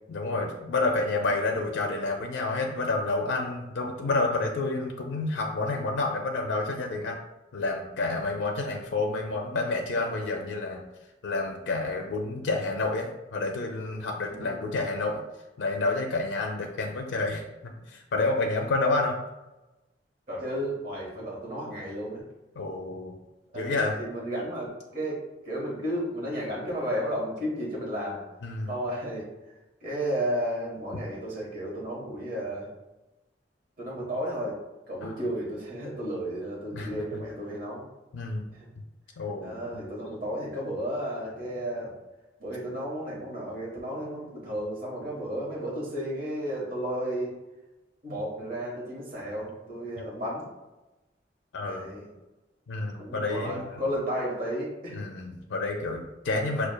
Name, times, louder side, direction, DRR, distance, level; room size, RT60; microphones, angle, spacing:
voice 1, 0.1-7.2 7.5-10.8 11.2-15.2 15.6-19.1 22.6-23.1 23.5-24.0 28.4-28.7 35.0-35.1 36.7-36.9 38.1-38.5 39.2-39.6 51.5-51.8 52.7-53.8 54.9-56.7, left 3 dB, 75° left, 2 dB, 0.4 m, -29 dB
voice 2, 1.2-1.5 14.3-14.7 20.3-22.2 23.5-28.2 28.7-29.3 29.8-32.7 33.8-34.6 34.9-37.9 38.5-38.7 39.4-41.9 42.4-47.4 48.0-50.5 51.6-52.1 53.0-55.0, equal, 50° right, -4 dB, 1.2 m, -33 dB
4.9 x 2.3 x 2.2 m, 1.0 s
head